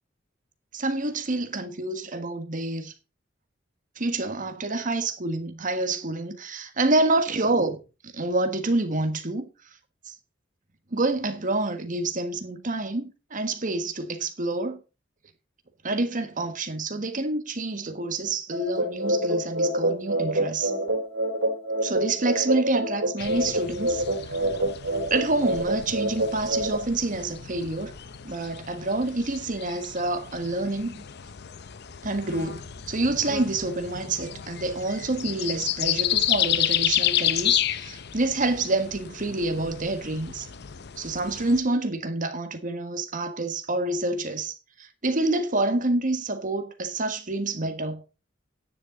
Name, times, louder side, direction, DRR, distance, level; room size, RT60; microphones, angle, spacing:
voice 1, 0.7-2.9 4.0-7.8 8.1-9.5 10.1-10.2 10.9-14.8 15.8-20.7 21.8-24.0 25.1-27.9 28.2-31.0 32.0-40.5 41.0-48.0, right 2 dB, 45° right, 1.5 m, -27 dB
sound 1, 18.5-26.8, right 1 dB, 70° right, 3.7 m, -27 dB
sound 2, 23.2-41.6, left 11 dB, 55° left, 0.7 m, -31 dB
10.0 x 10.0 x 3.8 m
head